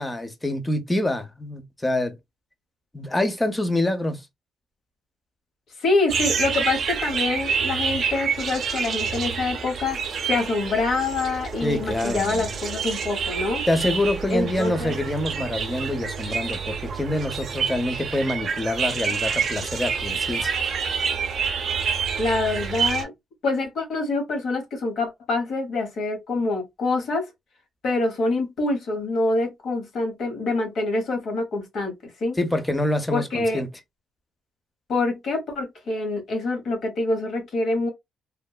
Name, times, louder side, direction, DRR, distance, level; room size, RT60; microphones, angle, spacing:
voice 1, 0.0-2.1 2.9-4.2 11.6-12.5 13.7-20.5 32.4-33.7, left 1 dB, 15° left, 0.7 m, -26 dB
voice 2, 5.8-13.6 14.3-14.9 22.2-23.1 23.4-27.3 27.8-32.4 33.1-33.6 34.9-37.9, left 2 dB, 65° left, 1.1 m, -26 dB
sound 1, 6.1-23.0, right 6 dB, 55° right, 0.6 m, -28 dB
3.2 x 2.0 x 2.2 m
cardioid pair, 90°, 0 cm